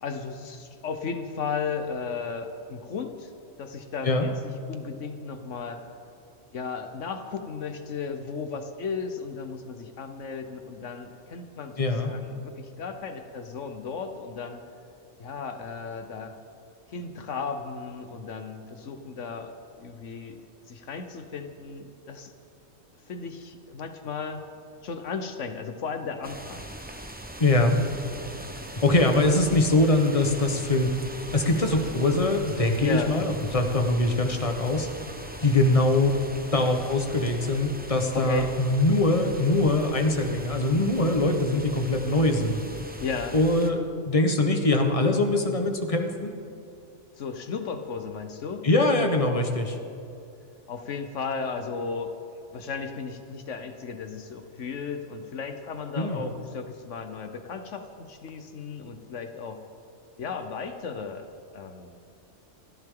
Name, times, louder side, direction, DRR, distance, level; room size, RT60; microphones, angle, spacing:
voice 1, 0.0-3.3 3.6-5.8 6.5-14.6 15.2-16.3 16.9-20.4 20.7-22.3 23.0-24.4 24.8-26.6 32.8-33.2 38.1-38.5 43.0-43.3 47.2-48.7 50.7-52.2 52.5-59.6 60.2-61.3 61.5-62.0, left 5 dB, 85° left, 7 dB, 1.4 m, -35 dB
voice 2, 11.8-12.1 27.4-27.8 28.8-30.9 31.3-34.9 35.4-36.1 36.5-42.6 43.3-43.8 44.1-46.3 48.6-49.8 56.0-56.3, left 2 dB, 30° left, 4 dB, 1.3 m, -23 dB
sound 1, 26.2-43.7, right 1 dB, 10° right, 0.8 m, -41 dB
28.5 x 10.5 x 3.9 m, 2.5 s
omnidirectional pair, 1.2 m